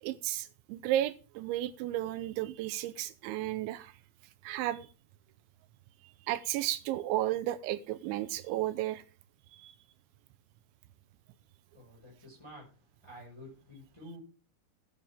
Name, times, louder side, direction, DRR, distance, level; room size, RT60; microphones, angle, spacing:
voice 1, 0.0-4.0 4.4-4.9 6.0-9.0 9.5-9.7, right 14 dB, 85° right, 3.0 m, -33 dB
voice 2, 11.7-12.7 13.0-14.2, equal, 5° left, 5.0 m, -50 dB
16.0 x 9.0 x 3.6 m
omnidirectional pair, 5.2 m